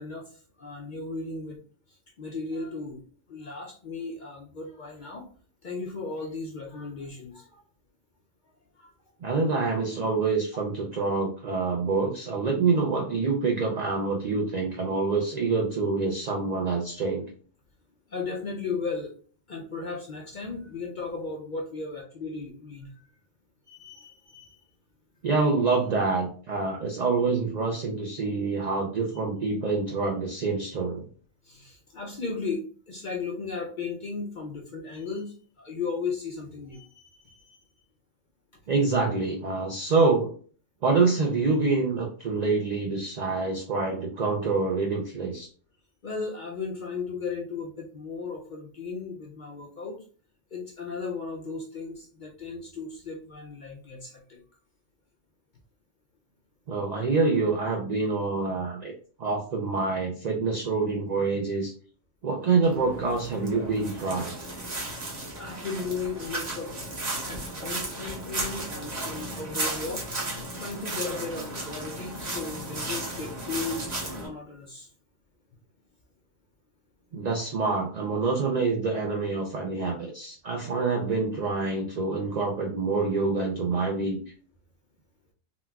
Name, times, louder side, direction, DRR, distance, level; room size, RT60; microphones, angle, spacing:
voice 1, 0.0-1.6 1.9-3.0 3.3-5.2 5.6-7.6 8.8-8.9 18.1-19.1 19.5-23.1 23.7-24.6 31.4-37.7 46.0-50.0 50.5-54.4 65.4-66.7 67.2-70.0 70.3-74.9, left 4 dB, 60° left, -2 dB, 0.5 m, -36 dB
voice 2, 9.2-17.3 25.2-31.1 38.7-40.3 40.8-45.5 56.7-58.9 59.2-61.7 62.2-64.3 77.1-84.2, right 4 dB, 65° right, 0 dB, 0.4 m, -26 dB
sound 1, 62.6-74.3, right 2 dB, 35° right, 0.9 m, -35 dB
3.9 x 2.2 x 2.3 m, 0.43 s
omnidirectional pair, 1.3 m